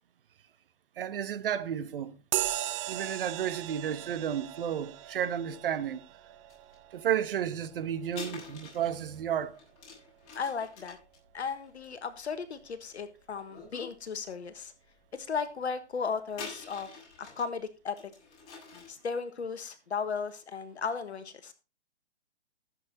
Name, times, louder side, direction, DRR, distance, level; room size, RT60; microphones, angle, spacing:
voice 1, 1.0-2.1 2.9-6.0 6.9-9.5, right 9 dB, 50° right, 1.4 m, -32 dB
sound 1, 2.3-10.2, right 13 dB, 25° right, 0.9 m, -39 dB
sound 2, 6.5-6.7 8.1-12.8 13.4-14.0 14.4-14.5 16.3-17.5 18.0-19.0, left 4 dB, 35° left, 7.8 m, -46 dB
voice 2, 10.3-11.0 11.3-14.7 15.1-16.9 17.2-18.0 18.7-21.5, left 5 dB, 70° left, 1.5 m, -35 dB
15.5 x 7.8 x 4.1 m
figure-of-eight pair, 135°, 34 cm